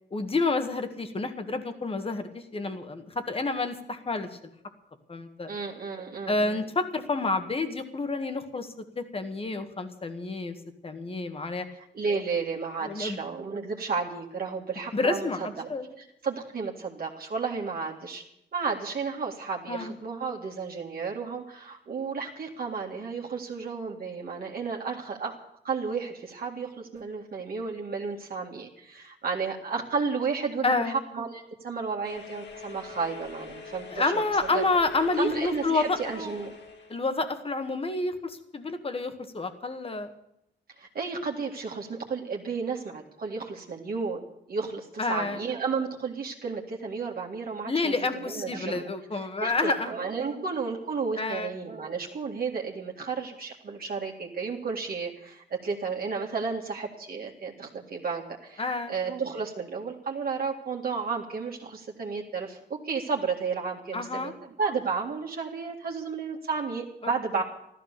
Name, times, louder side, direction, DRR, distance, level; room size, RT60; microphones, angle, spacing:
voice 1, 0.1-4.4 5.1-5.5 6.3-10.5 10.8-11.7 12.8-13.2 14.9-15.9 19.7-20.0 30.6-31.0 33.9-36.0 36.9-40.1 45.0-45.4 47.7-49.9 51.2-51.5 58.6-59.0 63.9-64.3 67.0-67.1, left 3 dB, 30° left, 8 dB, 1.7 m, -29 dB
voice 2, 5.5-6.6 11.9-15.7 16.2-18.2 18.5-25.3 25.6-34.2 34.5-34.6 35.2-36.5 40.8-48.8 49.4-64.3 64.6-67.4, right 5 dB, 55° right, 0 dB, 2.0 m, -32 dB
sound 1, 32.0-37.1, left 4 dB, 70° left, 2.6 m, -44 dB
14.5 x 13.5 x 6.7 m, 0.80 s
wide cardioid pair, 135°, 19 cm